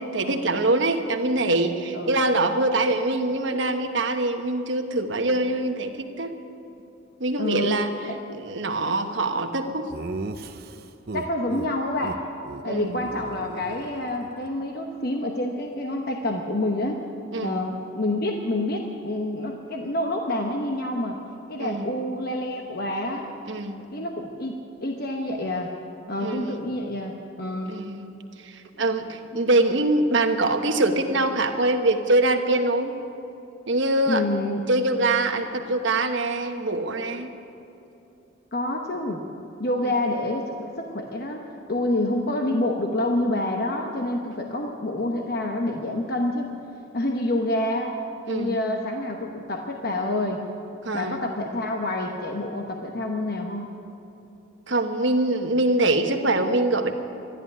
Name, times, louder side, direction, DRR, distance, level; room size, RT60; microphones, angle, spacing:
voice 1, 0.1-6.3 7.2-7.9 8.3-9.9 12.6-13.0 17.3-17.6 21.6-21.9 23.4-23.9 26.2-26.6 27.6-33.0 33.7-34.3 34.7-37.3 39.8-39.9 48.3-48.6 50.8-51.2 54.7-56.9, right 2 dB, 65° right, 5 dB, 1.1 m, -24 dB
voice 2, 7.4-7.8 8.1-8.2 11.1-12.2 12.6-17.0 17.4-21.2 21.5-23.3 23.9-25.7 26.1-27.7 29.3-29.4 34.1-34.6 38.5-39.2 39.6-41.4 41.7-46.5 46.9-48.0 48.3-50.4 50.9-53.7, left 1 dB, 50° left, 2 dB, 1.0 m, -27 dB
Laughter, 9.9-11.7 12.0-12.2 12.4-12.6 12.9-14.5, right 3 dB, 50° right, 0.6 m, -36 dB
13.0 x 11.0 x 9.9 m, 2.9 s
head